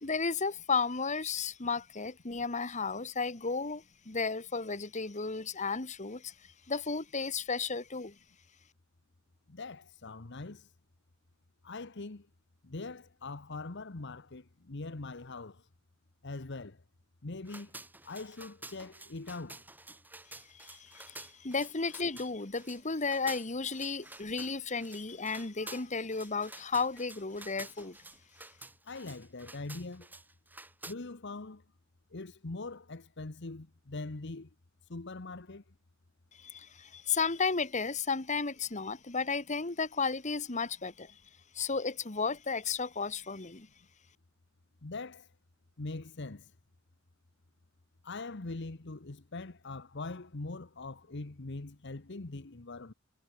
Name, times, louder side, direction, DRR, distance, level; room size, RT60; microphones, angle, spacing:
voice 1, 0.0-6.3 6.7-8.2 20.5-28.0 36.4-41.2 41.5-43.7, left 4 dB, 35° left, 1.5 m, -33 dB
voice 2, 9.5-10.7 11.6-12.3 12.6-15.7 16.2-16.8 17.2-19.6 28.8-30.1 30.9-31.6 32.1-34.5 34.9-35.6 44.8-45.3 45.8-46.5 48.0-52.9, left 3 dB, 60° left, 1.1 m, -42 dB
sound 1, 17.5-30.9, right 2 dB, 10° right, 2.9 m, -50 dB
head